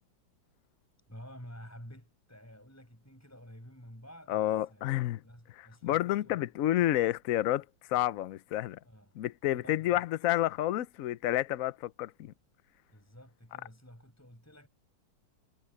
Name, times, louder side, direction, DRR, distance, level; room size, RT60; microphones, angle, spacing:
voice 1, 1.1-4.9 5.2-6.4 8.8-9.2 9.5-10.0 12.9-14.7, equal, 5° left, 6.3 m, -51 dB
voice 2, 4.3-5.2 5.5-8.8 9.1-12.3, left 14 dB, 75° left, 0.8 m, -30 dB
omnidirectional pair, 2.2 m